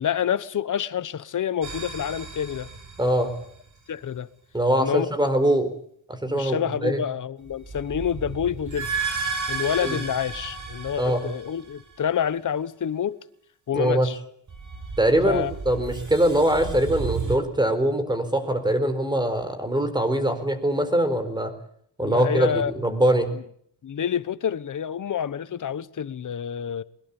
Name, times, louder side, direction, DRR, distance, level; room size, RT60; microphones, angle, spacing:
voice 1, 0.0-2.7 3.9-4.3 4.8-5.1 6.2-8.9 9.5-13.2 13.7-14.2 15.2-15.5 22.0-22.7 23.8-26.8, left 8 dB, 45° left, 1.1 m, -28 dB
sound 1, 1.6-3.6 7.5-12.0 14.5-17.4, right 5 dB, 45° right, 5.8 m, -33 dB
voice 2, 3.0-3.3 4.5-5.7 6.1-7.0 9.8-10.0 11.0-11.3 13.7-14.1 15.0-21.5 22.0-23.3, right 1 dB, 10° right, 4.3 m, -22 dB
22.5 x 21.0 x 8.7 m
wide cardioid pair, 135°, 42 cm